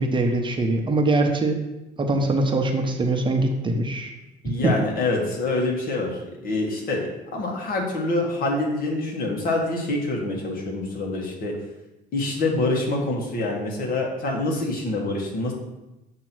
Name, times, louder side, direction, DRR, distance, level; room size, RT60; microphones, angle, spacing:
voice 1, 0.0-1.6 2.0-4.1 4.6-4.8, right 2 dB, 30° right, 3 dB, 0.8 m, -22 dB
voice 2, 4.4-11.6 12.1-15.5, left 2 dB, 60° left, -1 dB, 1.8 m, -26 dB
7.3 x 3.0 x 6.0 m, 0.98 s
cardioid pair, 110°, 17 cm